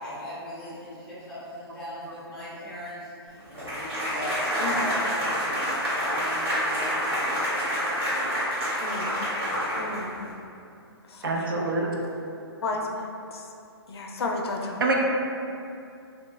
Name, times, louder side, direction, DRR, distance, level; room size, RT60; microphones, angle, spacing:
voice 1, 0.0-7.4 7.9-8.4, equal, 5° left, -11 dB, 0.6 m, -38 dB
sound 1, 3.5-10.3, equal, 75° right, 1.5 m, -28 dB
voice 2, 8.8-9.2 9.7-10.2 11.1-11.7 12.6-13.5 13.9-14.8, left 3 dB, 75° left, 1 dB, 0.4 m, -33 dB
voice 3, 11.2-11.9 14.8-15.0, right 3 dB, 55° right, 0 dB, 0.4 m, -25 dB
2.7 x 2.1 x 3.2 m, 2.6 s
hypercardioid pair, 165°, 13 cm